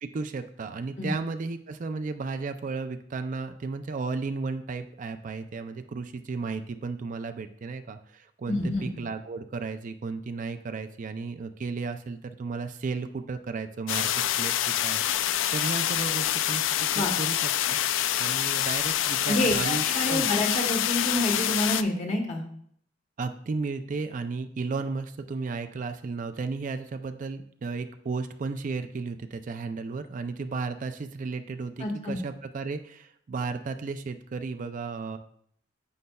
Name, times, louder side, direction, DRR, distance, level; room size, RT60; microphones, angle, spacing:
voice 1, 0.0-15.0 15.5-17.8 18.2-20.3 23.2-35.2, right 4 dB, 40° right, 8 dB, 0.4 m, -34 dB
voice 2, 8.5-8.9 16.9-17.2 19.3-22.4 31.8-32.2, left 1 dB, 35° left, 2 dB, 1.2 m, -28 dB
sound 1, 13.9-21.8, left 11 dB, 75° left, 0.3 m, -26 dB
9.3 x 6.6 x 2.3 m, 0.64 s
head